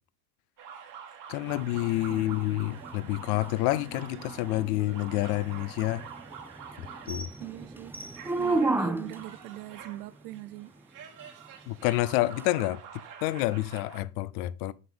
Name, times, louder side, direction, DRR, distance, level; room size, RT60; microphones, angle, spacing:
sound 1, 0.6-14.0, right 7 dB, 40° right, 1.6 m, -47 dB
voice 1, 1.3-6.0 6.8-7.3 11.7-12.8 13.2-14.7, left 17 dB, 70° left, 0.7 m, -28 dB
sound 2, 1.5-9.4 12.4-12.5, right 2 dB, 5° right, 0.6 m, -34 dB
voice 2, 7.4-7.9 8.4-10.7, right 17 dB, 80° right, 0.7 m, -41 dB
7.0 x 6.3 x 3.7 m
hypercardioid pair, 95°, 46 cm